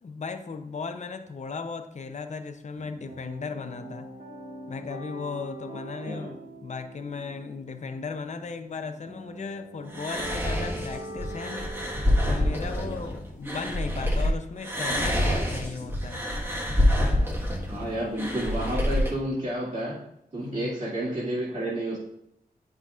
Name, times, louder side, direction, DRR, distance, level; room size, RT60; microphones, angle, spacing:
voice 1, 0.0-4.1 4.7-11.7 12.3-16.2 20.4-20.7, left 4 dB, 50° left, 8 dB, 0.6 m, -36 dB
sound 1, 2.8-13.0, right 1 dB, 75° right, 1.7 m, -42 dB
sound 2, 9.9-14.3 14.6-19.1, left 1 dB, 15° right, 1.4 m, -26 dB
voice 2, 17.7-20.1 20.3-22.0, right 1 dB, 55° right, -10 dB, 2.2 m, -30 dB
9.1 x 5.8 x 2.4 m, 0.80 s
wide cardioid pair, 90°, 15 cm